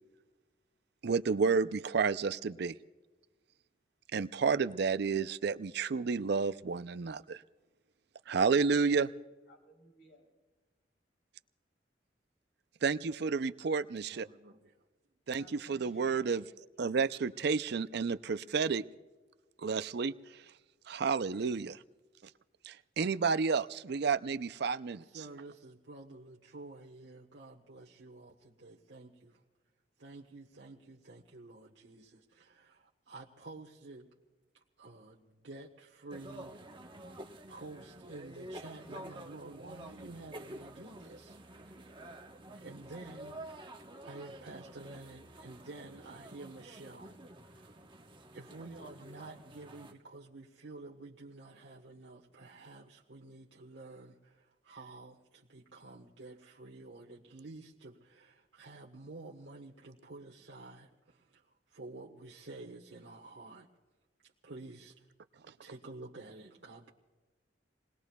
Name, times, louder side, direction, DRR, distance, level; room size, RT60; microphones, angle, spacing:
voice 1, 1.0-2.7 4.1-7.4 8.3-9.1 12.8-14.3 15.3-16.4 16.8-18.8 19.6-20.1 20.9-21.8 22.7-25.0, right 5 dB, 65° right, 14 dB, 0.5 m, -31 dB
voice 2, 9.5-10.2 15.4-16.3, right 1 dB, 70° left, -1 dB, 3.5 m, -58 dB
voice 3, 14.1-14.8 25.0-29.4 30.0-34.1 34.5-36.7 37.5-42.0 42.5-43.5 44.0-47.9 48.3-63.7 64.2-65.1 65.6-66.9, right 2 dB, 80° right, -3 dB, 1.2 m, -50 dB
sound 1, 36.1-49.9, right 1 dB, 25° right, 1.0 m, -49 dB
28.5 x 20.5 x 2.3 m, 1.2 s
head